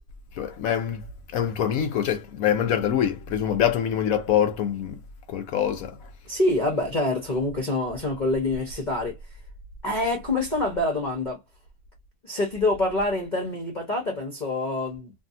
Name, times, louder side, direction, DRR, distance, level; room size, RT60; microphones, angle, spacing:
voice 1, 0.4-1.0 1.3-5.0 5.3-5.9, left 9 dB, 80° left, 0.7 m, -24 dB
voice 2, 6.3-9.2 9.8-11.4 12.2-15.1, left 2 dB, 35° left, 0.7 m, -26 dB
2.7 x 2.6 x 2.5 m
omnidirectional pair, 2.0 m